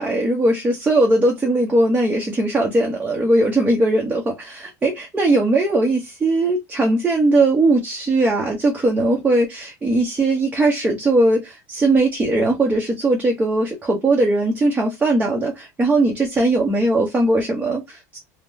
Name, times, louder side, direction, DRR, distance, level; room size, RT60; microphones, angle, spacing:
voice 1, 0.0-18.2, right 2 dB, 15° right, 0.8 m, -19 dB
3.5 x 2.2 x 2.6 m
supercardioid pair, 120°, 9 cm